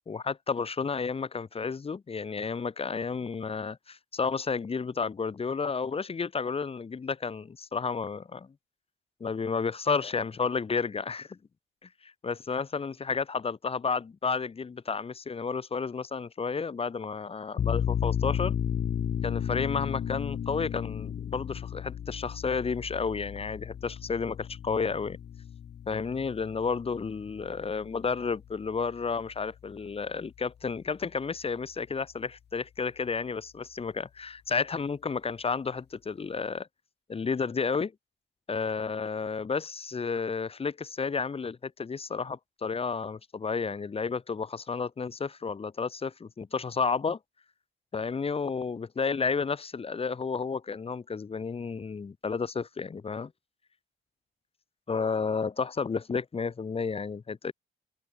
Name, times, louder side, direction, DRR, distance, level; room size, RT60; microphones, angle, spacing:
voice 1, 0.1-8.5 9.2-11.4 12.0-18.5 19.2-25.2 25.9-36.7 37.1-37.9 38.5-47.2 47.9-53.3 54.9-57.5, left 5 dB, 30° left, 1.0 m, -31 dB
sound 1, 17.6-28.9, left 9 dB, 55° left, 2.9 m, -34 dB
open air
cardioid pair, 90°, 20 cm